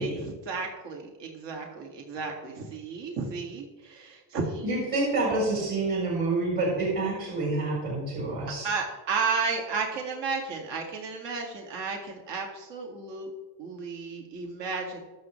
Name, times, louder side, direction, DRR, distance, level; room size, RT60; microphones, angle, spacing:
voice 1, 0.0-4.7 8.6-13.3 13.6-15.0, right 4 dB, 65° right, 1 dB, 2.2 m, -33 dB
voice 2, 4.6-8.7, right 2 dB, 45° right, -5 dB, 4.3 m, -28 dB
21.0 x 7.0 x 3.2 m, 1.2 s
cardioid pair, 145°, 46 cm